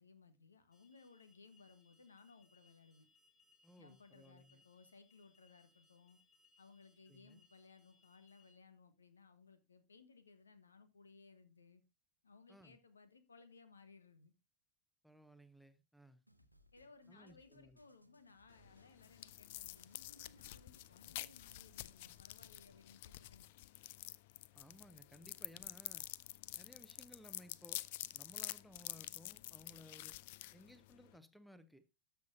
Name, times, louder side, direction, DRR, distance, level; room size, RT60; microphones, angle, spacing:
voice 1, 0.0-3.1 3.8-6.2 6.6-11.8 12.2-14.3 16.7-23.5, left 4 dB, 75° left, 1.3 m, -62 dB
Alarm, 0.7-8.5, left 3 dB, 30° left, 6.0 m, -73 dB
voice 2, 3.6-4.6 7.1-7.4 12.5-12.8 15.0-16.2 17.1-17.8 24.5-26.0 26.6-30.2 30.5-31.9, equal, ahead, 0.8 m, -60 dB
sound 1, 16.3-22.3, equal, 90° right, 0.8 m, -69 dB
sound 2, 18.5-31.2, left 17 dB, 50° left, 0.4 m, -49 dB
13.0 x 7.1 x 2.7 m
figure-of-eight pair, 90°, 0 cm